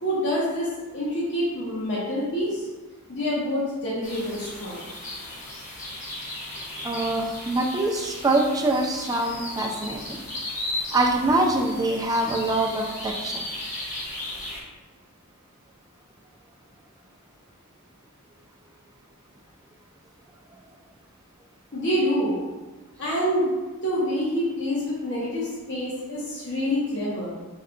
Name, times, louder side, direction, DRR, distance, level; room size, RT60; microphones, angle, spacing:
voice 1, 0.0-2.7 3.1-4.8 21.7-22.4 23.0-23.5 23.8-27.3, equal, 55° left, -7 dB, 1.0 m, -26 dB
sound 1, 4.0-14.6, left 1 dB, 35° left, 1.2 m, -36 dB
voice 2, 6.8-10.2 10.9-13.4, right 2 dB, 15° right, -1 dB, 0.4 m, -24 dB
5.4 x 2.3 x 3.7 m, 1.2 s
head